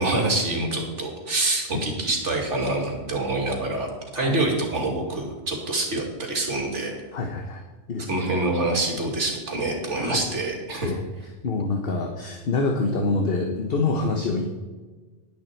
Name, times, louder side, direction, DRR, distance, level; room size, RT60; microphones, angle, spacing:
voice 1, 0.0-6.9 8.1-10.9, right 2 dB, 80° right, 1 dB, 2.6 m, -26 dB
voice 2, 7.1-7.6 7.9-8.2 10.0-10.2 10.8-11.0 11.4-14.5, left 3 dB, 55° left, 3 dB, 1.3 m, -26 dB
11.0 x 10.5 x 4.5 m, 1.3 s
omnidirectional pair, 1.2 m